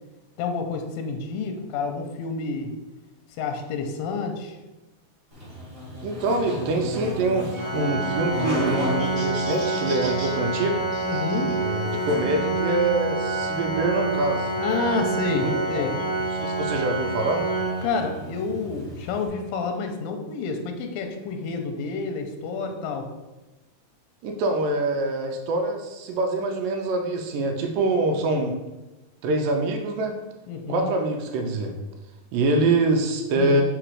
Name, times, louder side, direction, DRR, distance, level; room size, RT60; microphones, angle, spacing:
voice 1, 0.4-2.7 3.4-4.6 8.2-8.6 11.0-11.5 14.6-15.9 17.8-23.1 30.5-30.9 33.4-33.6, left 4 dB, 90° left, 5 dB, 2.4 m, -29 dB
Buzz, 5.3-19.3, equal, 25° right, 1.7 m, -36 dB
voice 2, 6.0-10.9 11.6-14.5 15.4-17.4 24.2-28.6 29.2-30.2 30.7-31.7 32.3-33.6, right 2 dB, 80° right, 3 dB, 2.2 m, -25 dB
Organ, 7.5-18.4, right 2 dB, 45° left, 1.1 m, -28 dB
5.0 x 4.2 x 4.6 m, 1.1 s
omnidirectional pair, 4.0 m